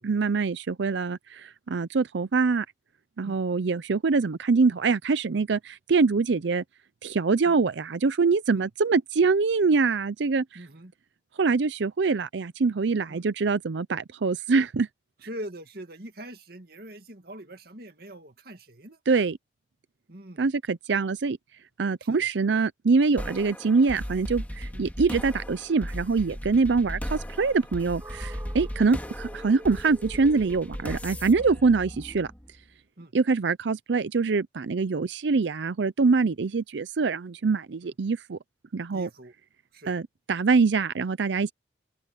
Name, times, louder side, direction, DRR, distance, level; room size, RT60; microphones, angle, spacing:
voice 1, 0.0-2.7 3.2-6.6 7.0-10.4 11.4-14.9 19.1-19.4 20.4-21.4 21.8-32.3 33.1-38.4 38.7-39.1 39.9-41.5, right 4 dB, 75° right, 0.5 m, -24 dB
voice 2, 10.5-10.9 13.1-13.2 15.2-19.0 20.1-20.5 22.0-22.3 24.7-24.9 33.0-33.1 34.9-35.0 37.8-37.9 38.9-39.3 39.7-39.9, right 1 dB, 55° right, 2.2 m, -43 dB
sound 1, 23.2-32.6, equal, 10° left, 2.1 m, -37 dB
sound 2, 28.0-32.2, right 1 dB, 15° right, 6.8 m, -47 dB
open air
head